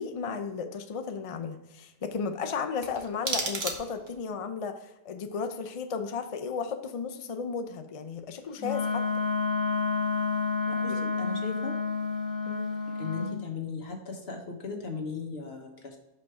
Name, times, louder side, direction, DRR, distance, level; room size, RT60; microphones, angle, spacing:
voice 1, 0.0-9.0 12.5-12.7, left 5 dB, 45° left, 7 dB, 0.4 m, -34 dB
sound 1, 2.8-4.3, right 3 dB, 60° right, 1.3 m, -34 dB
Wind instrument woodwind instrument, 8.6-13.4, left 4 dB, ahead, 1.3 m, -29 dB
voice 2, 10.7-11.8 13.0-16.0, left 4 dB, 65° left, 1 dB, 1.4 m, -37 dB
5.6 x 5.3 x 3.5 m, 1.0 s
omnidirectional pair, 1.2 m